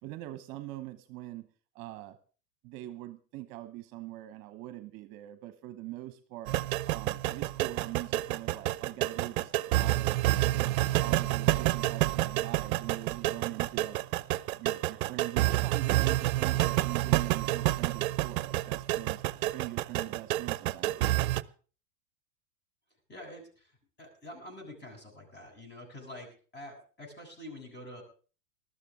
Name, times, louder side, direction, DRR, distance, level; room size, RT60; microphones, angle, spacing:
voice 1, 0.0-1.5 1.7-2.2 2.6-6.6 6.9-10.2 10.4-14.0 14.5-21.4, right 16 dB, 45° right, 10 dB, 1.1 m, -42 dB
sound 1, 6.5-21.4, right 16 dB, 60° right, 0.7 m, -29 dB
voice 2, 23.1-28.0, left 1 dB, 20° left, 2 dB, 7.8 m, -47 dB
20.0 x 13.0 x 3.7 m, 0.39 s
hypercardioid pair, 95°, 48 cm